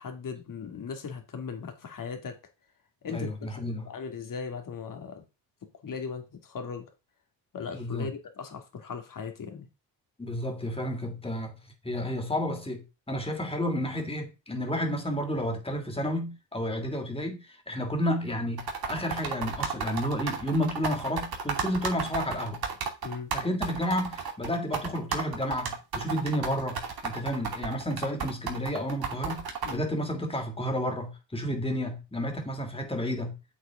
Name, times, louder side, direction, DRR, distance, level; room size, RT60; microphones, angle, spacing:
voice 1, 0.0-2.4 3.0-3.5 3.9-5.2 5.6-6.9 7.5-9.7 23.0-23.3 29.6-29.8, left 5 dB, 45° left, 2.5 m, -38 dB
voice 2, 3.1-3.9 7.7-8.1 10.2-11.6 11.8-22.6 23.3-29.4 29.7-33.4, equal, 10° left, 2.9 m, -31 dB
sound 1, 18.6-29.7, right 5 dB, 50° right, 2.6 m, -33 dB
8.2 x 8.1 x 3.8 m
cardioid pair, 110°, 47 cm